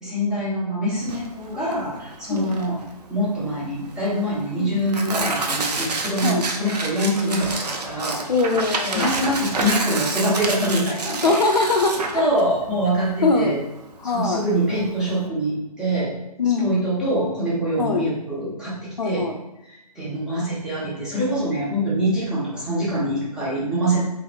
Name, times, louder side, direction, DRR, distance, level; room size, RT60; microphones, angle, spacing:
voice 1, 0.0-2.8 3.1-8.2 8.9-11.4 12.1-13.6 14.0-16.1 16.6-19.3 19.6-24.0, right 1 dB, 5° right, -9 dB, 0.4 m, -24 dB
Tearing, 1.0-15.3, right 3 dB, 85° right, 0.4 m, -29 dB
voice 2, 8.3-9.1 11.2-12.2 13.2-13.5 14.0-14.4 16.4-16.7 17.8-18.0 19.0-19.3, left 4 dB, 85° left, 3 dB, 0.5 m, -21 dB
2.9 x 2.0 x 2.4 m, 0.92 s
figure-of-eight pair, 135°, 20 cm